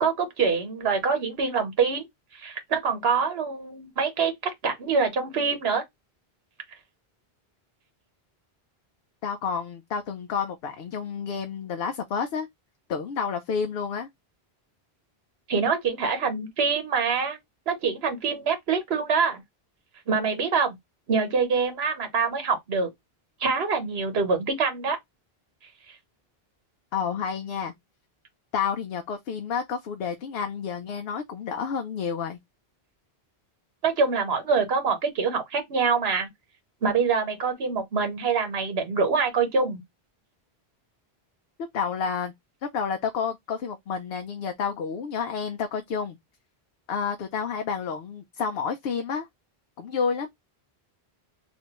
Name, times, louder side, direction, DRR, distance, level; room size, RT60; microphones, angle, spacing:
voice 1, 0.0-2.1 2.3-5.8 15.5-17.4 17.7-19.4 20.1-20.8 21.1-22.9 23.4-25.0 33.8-36.3 36.8-39.8, right 5 dB, 75° right, 1.2 m, -25 dB
voice 2, 9.2-12.5 12.9-14.1 26.9-27.7 28.5-32.4 41.7-42.3 42.6-46.2 46.9-49.3 49.8-50.3, left 6 dB, 75° left, 0.8 m, -30 dB
3.2 x 2.6 x 2.9 m
omnidirectional pair, 1.1 m